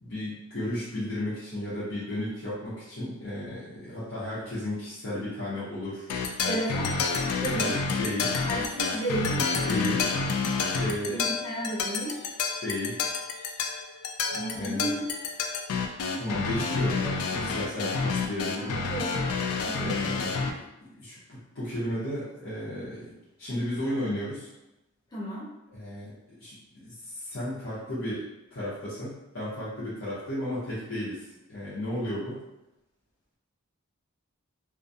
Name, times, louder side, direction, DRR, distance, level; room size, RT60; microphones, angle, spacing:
voice 1, 0.0-6.1 7.5-8.4 9.6-11.3 12.6-13.0 14.3-14.9 16.2-18.8 19.8-20.5 21.0-23.1 23.4-24.5 25.7-32.4, left 1 dB, 60° left, -11 dB, 0.8 m, -34 dB
sound 1, 6.1-20.5, left 4 dB, 80° left, 0.3 m, -29 dB
voice 2, 6.5-6.9 7.4-7.8 8.4-9.4 11.1-12.2 14.3-15.0 18.6-19.3 19.5-19.9 25.1-25.5, right 1 dB, 15° left, -8 dB, 0.5 m, -33 dB
2.3 x 2.1 x 2.6 m, 0.90 s
head